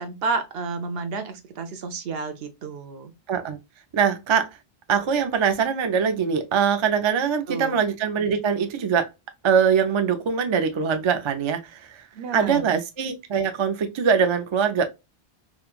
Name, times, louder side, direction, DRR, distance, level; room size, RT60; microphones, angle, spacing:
voice 1, 0.0-3.1 7.5-7.8 12.1-12.7, right 4 dB, 70° right, 0.8 m, -31 dB
voice 2, 3.9-4.5 4.9-9.1 9.4-12.0 12.3-14.8, right 6 dB, 50° right, 0.3 m, -22 dB
3.0 x 2.2 x 2.3 m
omnidirectional pair, 1.1 m